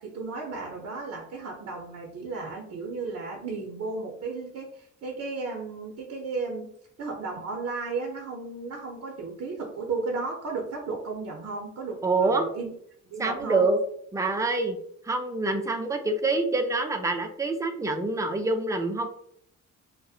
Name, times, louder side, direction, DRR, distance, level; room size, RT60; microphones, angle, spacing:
voice 1, 0.0-6.7 7.0-12.7 13.1-13.6, right 3 dB, 55° right, 0 dB, 0.6 m, -34 dB
voice 2, 12.0-12.5 13.2-13.8 14.1-14.8 15.0-19.1, right 3 dB, 10° right, 5 dB, 0.3 m, -26 dB
2.6 x 2.0 x 2.3 m, 0.66 s
cardioid pair, 90°, 30 cm